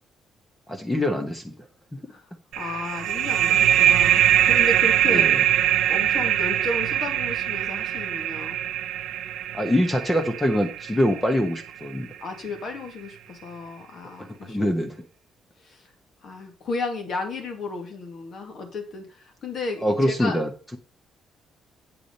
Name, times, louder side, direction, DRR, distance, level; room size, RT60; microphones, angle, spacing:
voice 1, 0.7-1.5 1.9-2.0 5.1-5.4 9.5-12.1 14.2-14.9 19.8-20.8, equal, 10° left, 6 dB, 0.9 m, -24 dB
voice 2, 2.5-5.3 5.6-8.6 12.2-14.8 15.6-15.9 16.2-20.4, left 3 dB, 45° left, 5 dB, 2.2 m, -33 dB
sound 1, 2.5-11.8, right 11 dB, 85° right, 0.7 m, -22 dB
8.7 x 4.9 x 5.3 m, 0.36 s
cardioid pair, 170°, 0 cm